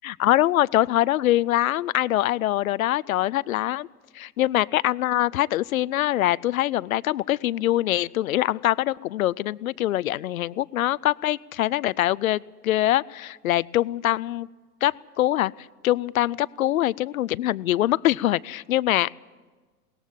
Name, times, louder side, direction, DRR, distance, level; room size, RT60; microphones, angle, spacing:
voice 1, 0.0-3.9 4.1-14.5 14.8-15.5 15.8-19.1, left 14 dB, 60° left, 23 dB, 0.6 m, -23 dB
18.5 x 14.5 x 10.0 m, 1.4 s
figure-of-eight pair, 95°, 47 cm